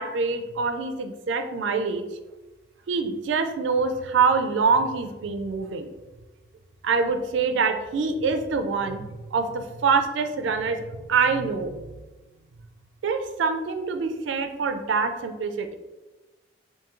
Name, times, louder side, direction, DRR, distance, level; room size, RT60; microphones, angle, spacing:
voice 1, 0.0-2.0 2.9-5.9 6.8-10.8 11.1-11.8 13.0-15.8, right 5 dB, 75° right, 7 dB, 0.3 m, -25 dB
2.9 x 2.6 x 3.6 m, 1.1 s
head